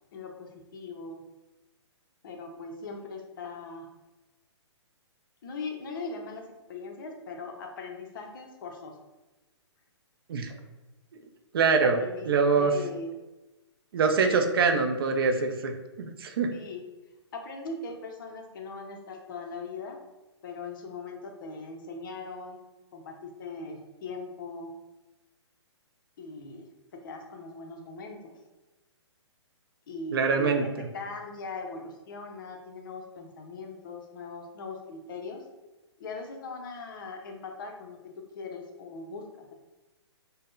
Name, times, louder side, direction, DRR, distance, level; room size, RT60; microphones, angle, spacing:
voice 1, 0.1-1.2 2.2-3.9 5.4-8.9 11.8-12.3 12.6-13.1 16.5-16.8 17.3-20.0 20.4-22.6 22.9-24.8 26.2-28.3 29.9-35.4 36.0-39.5, left 3 dB, 45° left, 3 dB, 0.5 m, -40 dB
voice 2, 11.5-12.0 12.3-12.7 13.9-15.7 16.0-16.5 30.1-30.9, right 5 dB, 50° right, 5 dB, 0.4 m, -24 dB
3.4 x 2.0 x 2.5 m, 1.1 s
figure-of-eight pair, 125°, 15 cm